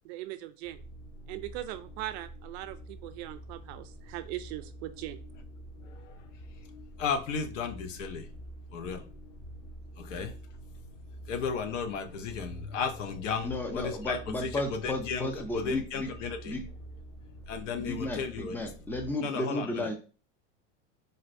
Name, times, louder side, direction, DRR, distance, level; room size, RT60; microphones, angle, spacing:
voice 1, 0.0-0.8 1.3-5.2, right 14 dB, 60° right, 10 dB, 0.5 m, -40 dB
sound 1, 0.6-19.1, right 1 dB, 45° left, 1.6 m, -47 dB
voice 2, 5.8-6.3 7.0-8.3 8.7-9.1 10.0-10.4 11.3-16.6 17.5-18.6 19.2-19.9, left 5 dB, 90° left, 8 dB, 0.7 m, -34 dB
voice 3, 13.4-16.1 16.4-16.6 17.8-20.0, left 1 dB, 5° left, 5 dB, 0.4 m, -34 dB
4.0 x 2.1 x 2.5 m, 0.35 s
supercardioid pair, 120°, 36 cm